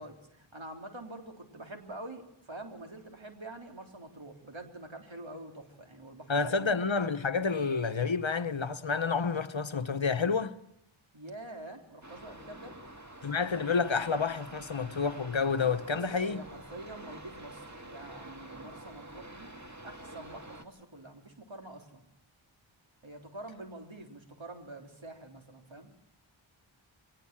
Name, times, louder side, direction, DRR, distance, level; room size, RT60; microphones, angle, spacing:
voice 1, 0.0-6.7 11.1-12.8 15.9-19.5 19.8-22.0 23.0-25.9, right 1 dB, 70° right, 3.6 m, -46 dB
voice 2, 6.3-10.6 13.2-16.4, left 5 dB, 70° left, 1.2 m, -29 dB
sound 1, 12.0-20.7, right 1 dB, 35° right, 2.2 m, -48 dB
22.5 x 18.5 x 7.4 m
wide cardioid pair, 40°, 49 cm